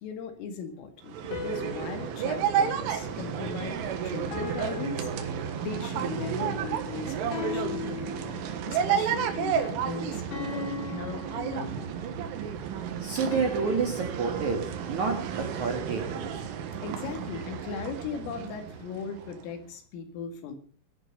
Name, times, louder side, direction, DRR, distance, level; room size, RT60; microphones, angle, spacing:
voice 1, 0.0-5.1 5.5-8.2 8.6-11.9 16.8-20.5, left 6 dB, 80° left, 6 dB, 4.6 m, -38 dB
sound 1, 1.0-19.5, right 8 dB, 75° right, 4.0 m, -32 dB
sound 2, 1.3-3.8 4.3-6.1 7.3-8.8 10.3-12.2 13.3-15.7, left 4 dB, 60° left, 4.5 m, -40 dB
voice 2, 13.0-16.3, right 4 dB, 55° right, 3 dB, 2.3 m, -29 dB
19.5 x 10.5 x 5.5 m, 0.40 s
omnidirectional pair, 5.8 m